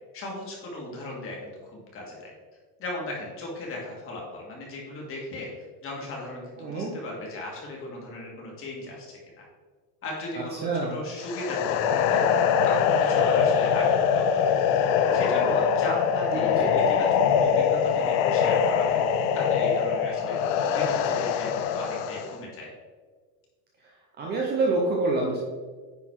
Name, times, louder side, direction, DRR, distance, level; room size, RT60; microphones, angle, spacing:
voice 1, 0.1-2.3 2.8-5.5 5.8-9.4 10.0-12.2 12.6-14.5 15.1-19.0 19.3-20.4 20.7-22.7, left 1 dB, 25° left, -2 dB, 1.9 m, -37 dB
voice 2, 6.6-6.9 10.6-11.0 16.3-16.7 24.2-25.4, right 3 dB, 20° right, -2 dB, 0.6 m, -26 dB
sound 1, 11.2-22.4, left 7 dB, 45° left, 0.4 m, -23 dB
9.5 x 4.0 x 4.5 m, 1.5 s
cardioid pair, 170°, 48 cm